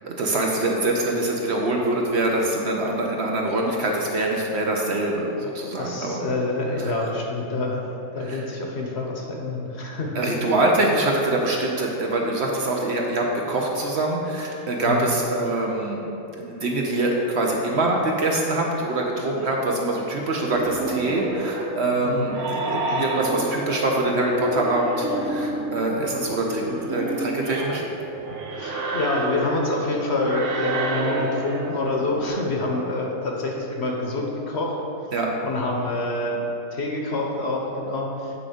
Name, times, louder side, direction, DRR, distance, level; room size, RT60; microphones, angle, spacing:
voice 1, 0.0-6.3 6.8-7.0 8.3-8.4 10.1-16.0 16.3-27.9 35.1-35.3, right 2 dB, 60° right, 0 dB, 0.8 m, -24 dB
voice 2, 5.8-7.8 8.1-10.2 14.8-15.1 22.0-22.3 22.9-23.0 28.6-34.8 35.4-36.4 36.7-38.3, left 2 dB, 55° left, -1 dB, 1.0 m, -27 dB
sound 1, 20.3-32.3, right 2 dB, 85° right, 1.3 m, -30 dB
8.5 x 3.7 x 5.0 m, 3.0 s
omnidirectional pair, 1.5 m